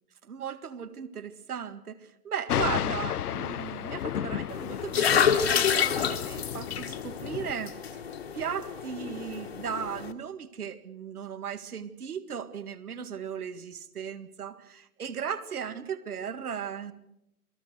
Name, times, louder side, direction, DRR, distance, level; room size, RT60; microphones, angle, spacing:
voice 1, 0.2-7.8 8.3-16.9, right 7 dB, 70° right, 2.0 m, -36 dB
Thunder, 2.5-7.5, left 10 dB, 75° left, 0.8 m, -33 dB
sound 1, 4.5-10.1, left 8 dB, 40° left, 1.5 m, -29 dB
27.5 x 19.5 x 6.5 m
hypercardioid pair, 180°, 47 cm